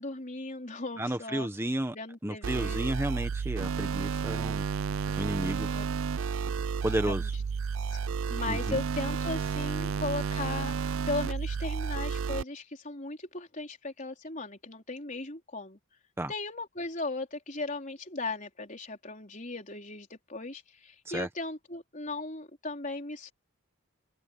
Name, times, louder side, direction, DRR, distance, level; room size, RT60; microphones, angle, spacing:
voice 1, 0.0-1.5 1.9-2.8 5.7-5.8 6.9-7.3 7.9-8.0 8.3-10.7 11.1-15.8 16.3-23.3, left 3 dB, 35° left, 4.4 m, -37 dB
voice 2, 1.0-1.9 2.2-4.6 5.2-5.7 6.8-7.3 8.5-8.8 16.2-16.3 21.1-21.3, right 1 dB, 10° right, 1.4 m, -32 dB
sound 1, 2.4-12.4, right 5 dB, 65° right, 0.4 m, -32 dB
open air
head